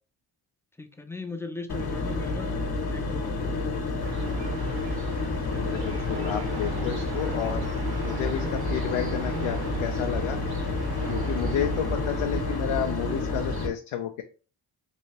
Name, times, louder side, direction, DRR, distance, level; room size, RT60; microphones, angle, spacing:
voice 1, 0.8-3.6 5.5-5.8, left 3 dB, 5° left, 0.4 m, -39 dB
sound 1, 1.7-13.7, left 3 dB, 50° left, 1.1 m, -30 dB
sound 2, 4.0-13.7, right 3 dB, 50° right, 0.9 m, -36 dB
voice 2, 5.7-7.7 8.0-10.4 11.1-14.2, left 9 dB, 80° left, 0.5 m, -31 dB
3.2 x 2.7 x 2.9 m
cardioid pair, 65°, 46 cm